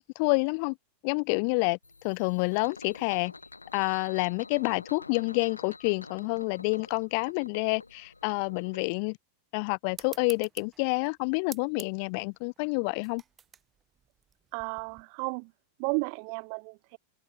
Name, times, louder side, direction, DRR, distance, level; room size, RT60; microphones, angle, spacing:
voice 1, 0.2-0.7 1.0-1.8 2.0-3.3 3.7-9.2 9.5-13.2, left 35 dB, 45° left, 0.5 m, -28 dB
sound 1, 1.8-8.8, left 3 dB, 80° left, 5.7 m, -48 dB
sound 2, 9.9-15.0, right 8 dB, 25° right, 2.8 m, -49 dB
voice 2, 14.5-15.5 15.8-17.0, right 40 dB or more, 45° right, 0.8 m, -33 dB
figure-of-eight pair, 90°, 0 cm